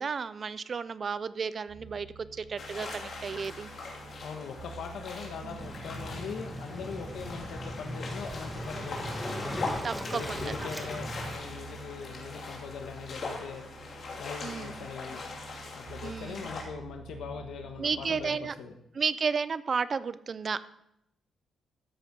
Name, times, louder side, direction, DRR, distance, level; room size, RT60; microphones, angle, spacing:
voice 1, 0.0-3.7 5.4-5.6 9.8-10.5 14.4-14.9 16.0-16.5 17.8-18.5 18.9-20.6, right 5 dB, 40° right, 15 dB, 0.5 m, -33 dB
sound 1, 1.7-18.3, right 5 dB, 70° right, 2.6 m, -49 dB
sound 2, 2.6-16.6, left 3 dB, 50° left, 3.1 m, -41 dB
voice 2, 4.2-9.4 10.1-13.6 14.2-15.2 15.7-18.7, left 6 dB, 80° left, 4 dB, 1.3 m, -41 dB
Waves surf, 5.6-11.4, equal, 5° right, 1.3 m, -38 dB
13.0 x 8.3 x 5.2 m, 0.80 s
cardioid pair, 130°, 0 cm